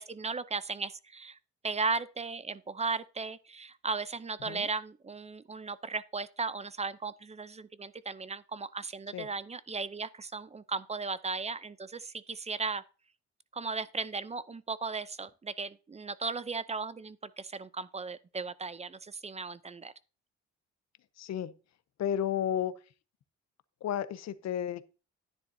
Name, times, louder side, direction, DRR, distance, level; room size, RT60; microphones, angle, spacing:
voice 1, 0.0-1.4 1.6-12.8 13.5-19.9, right 4 dB, 20° right, 0.5 m, -36 dB
voice 2, 21.2-21.5 22.0-22.7 23.8-24.9, left 10 dB, 60° left, 0.8 m, -32 dB
10.5 x 9.8 x 2.7 m
cardioid pair, 90°, 30 cm